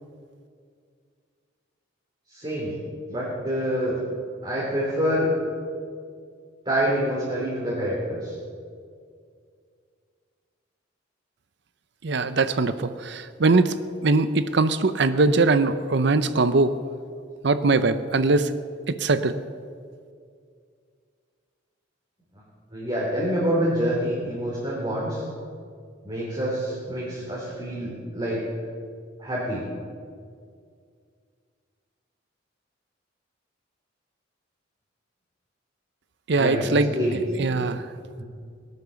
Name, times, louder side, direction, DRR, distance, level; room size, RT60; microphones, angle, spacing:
voice 1, 2.3-2.7 3.1-4.0 4.4-5.3 6.7-8.3 22.7-25.2 26.0-28.4 29.2-29.7 36.4-37.5 38.2-38.3, equal, 25° right, -6 dB, 3.5 m, -26 dB
voice 2, 12.0-13.7 14.0-16.7 17.4-18.5 18.9-19.3 36.3-36.9 37.4-37.8, right 3 dB, 60° right, 12 dB, 0.6 m, -21 dB
19.0 x 10.5 x 7.0 m, 2.2 s
head